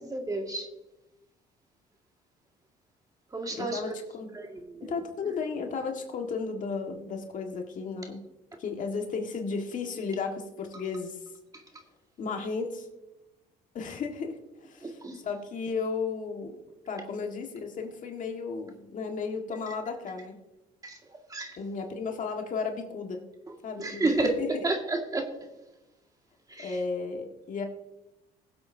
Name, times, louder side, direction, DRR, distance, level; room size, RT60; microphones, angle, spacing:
voice 1, 0.1-0.7 3.3-3.8 4.3-4.9 14.8-15.2 20.8-21.0 21.3-21.6 23.5-24.3 24.6-25.3 26.5-26.8, right 2 dB, 20° right, 2 dB, 2.0 m, -31 dB
voice 2, 3.5-4.3 4.9-8.2 8.6-11.3 12.2-12.9 13.7-16.6 16.9-20.4 21.6-23.2 23.6-24.1 24.4-24.7 26.6-27.7, left 4 dB, 50° left, 3 dB, 1.7 m, -34 dB
21.0 x 7.8 x 2.8 m, 0.96 s
cardioid pair, 110°, 17 cm